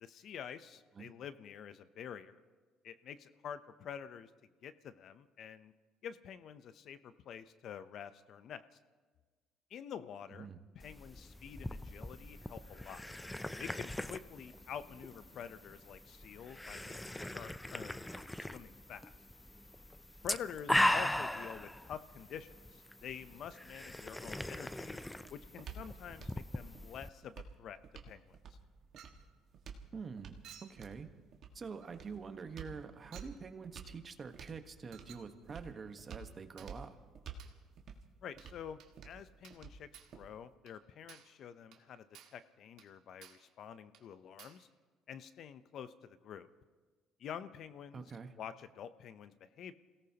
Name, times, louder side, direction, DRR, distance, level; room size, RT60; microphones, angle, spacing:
voice 1, 0.0-2.4 2.8-4.3 4.6-5.7 6.0-8.7 9.7-10.5 10.7-13.1 13.6-19.1 20.2-25.0 25.3-27.8 28.1-28.6 38.2-42.1 42.3-44.7 45.1-46.5 47.2-48.1 48.4-49.7, left 8 dB, 55° left, 13 dB, 0.6 m, -48 dB
sound 1, 10.8-27.1, left 1 dB, 5° left, 0.4 m, -39 dB
sound 2, 24.9-40.5, right 6 dB, 55° right, 1.6 m, -52 dB
Chink clink, 29.0-29.3 30.4-30.8 31.8-32.0 33.1-33.4 34.9-35.3 36.6-36.8 37.4-37.6 38.4-38.6 38.8-39.0 39.4-39.7 39.9-40.2 40.7-40.8 41.1-41.4 41.7-41.9 42.1-42.4 42.8-42.9 43.2-43.5 43.9-44.1 44.4-44.7, right 9 dB, 70° right, 1.6 m, -57 dB
voice 2, 29.9-31.1 31.5-37.0 47.9-48.3, right 5 dB, 30° right, 7 dB, 1.2 m, -46 dB
28.5 x 17.5 x 2.9 m, 1.4 s
cardioid pair, 110°, 0 cm